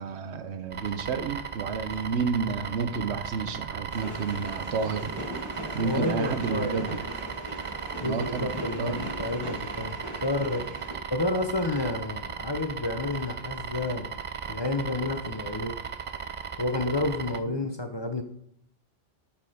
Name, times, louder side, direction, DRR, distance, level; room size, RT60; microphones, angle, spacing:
voice 1, 0.0-5.1 5.7-7.0 8.0-8.5 8.8-9.1, right 5 dB, 90° right, 10 dB, 1.1 m, -30 dB
sound 1, 0.7-17.4, right 6 dB, 50° right, 0.4 m, -37 dB
sound 2, 3.9-10.9, equal, 25° right, 2.0 m, -38 dB
voice 2, 5.8-7.0 8.0-10.7 11.1-14.1 14.5-15.8 16.6-18.2, left 2 dB, 30° left, 7 dB, 0.7 m, -30 dB
8.6 x 5.9 x 5.0 m, 0.69 s
omnidirectional pair, 1.1 m